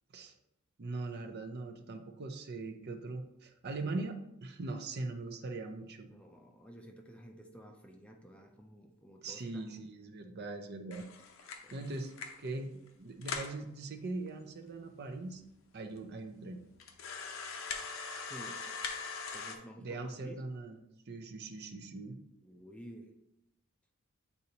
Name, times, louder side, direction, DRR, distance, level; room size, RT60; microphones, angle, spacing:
voice 1, 0.8-6.1 9.2-11.1 11.7-12.1 12.4-12.7 13.0-15.4 15.7-16.6 19.8-20.8 21.1-22.2, right 3 dB, 50° right, 5 dB, 0.6 m, -41 dB
voice 2, 6.1-9.7 11.6-11.9 18.3-18.6 19.3-20.4 22.4-23.2, equal, 5° left, 2 dB, 0.5 m, -52 dB
sound 1, 10.9-12.5 12.9-13.0 13.2-13.6 14.3-14.4 14.6-14.7 15.4-15.5 16.0-16.1 16.8-19.5, left 5 dB, 70° left, 0.7 m, -41 dB
8.2 x 4.1 x 2.8 m, 0.82 s
head